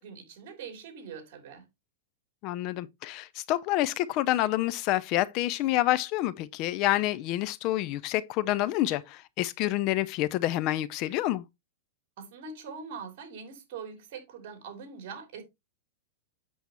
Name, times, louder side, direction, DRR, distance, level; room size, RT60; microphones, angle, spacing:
voice 1, 0.0-1.6 12.2-15.4, right 5 dB, 55° right, 3.4 m, -43 dB
voice 2, 2.4-11.4, left 15 dB, 40° left, 0.5 m, -28 dB
8.2 x 6.9 x 3.0 m
supercardioid pair, 145°, 0 cm